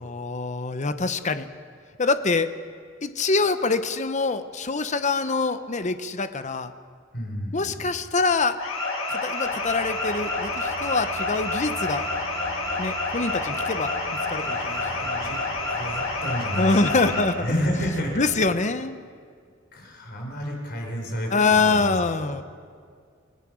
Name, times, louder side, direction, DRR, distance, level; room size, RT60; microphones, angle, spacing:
voice 1, 0.1-1.5 2.0-2.5 3.0-6.7 7.5-8.6 9.1-12.1 12.8-13.9 14.3-15.3 16.6-17.5 18.2-19.0 21.3-22.4, left 3 dB, 35° left, 10 dB, 0.9 m, -25 dB
voice 2, 7.1-8.0 14.4-15.4 15.6-18.3 19.7-22.4, equal, 50° left, 1 dB, 4.8 m, -31 dB
sound 1, 8.6-17.2, left 2 dB, 90° left, 6.7 m, -28 dB
sound 2, 9.4-18.5, right 2 dB, 85° right, 2.5 m, -42 dB
29.0 x 16.5 x 6.3 m, 2.1 s
head